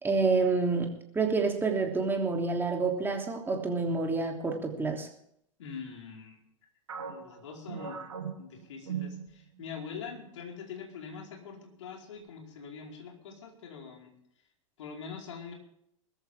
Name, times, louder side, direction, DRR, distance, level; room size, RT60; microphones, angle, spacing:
voice 1, 0.0-5.1, right 4 dB, 10° right, 2 dB, 3.2 m, -28 dB
voice 2, 5.6-6.4 7.0-8.0 8.4-14.1 14.8-15.5, left 6 dB, 60° left, 1 dB, 4.8 m, -44 dB
sound 1, 6.9-9.7 10.1-10.3 10.9-11.4, right 7 dB, 70° right, 3.1 m, -40 dB
22.0 x 14.0 x 3.7 m, 0.72 s
figure-of-eight pair, 95°, 17 cm